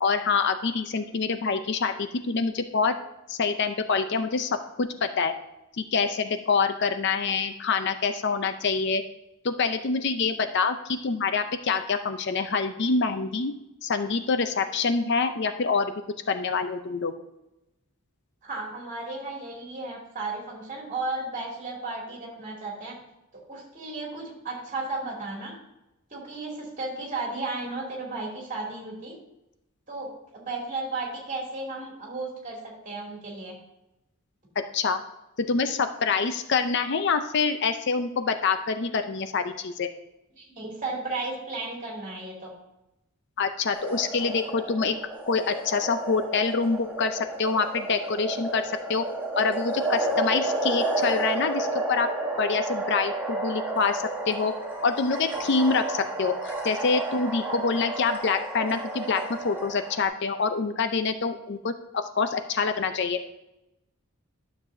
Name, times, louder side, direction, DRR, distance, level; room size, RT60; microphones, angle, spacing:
voice 1, 0.0-3.0 3.3-4.5 4.8-5.3 5.8-9.0 9.4-13.5 13.8-15.9 16.3-17.1 34.6-35.0 35.4-39.9 43.4-45.0 45.2-48.6 48.9-49.0 49.4-52.1 52.4-54.5 54.8-63.2, left 4 dB, 55° left, 9 dB, 0.5 m, -26 dB
voice 2, 18.4-23.0 23.3-25.6 26.1-29.1 29.9-33.5 40.4-42.5, right 3 dB, 35° right, -2 dB, 2.7 m, -34 dB
sound 1, 43.7-60.1, right 2 dB, 10° right, 1.2 m, -31 dB
12.0 x 6.8 x 2.7 m, 0.91 s
head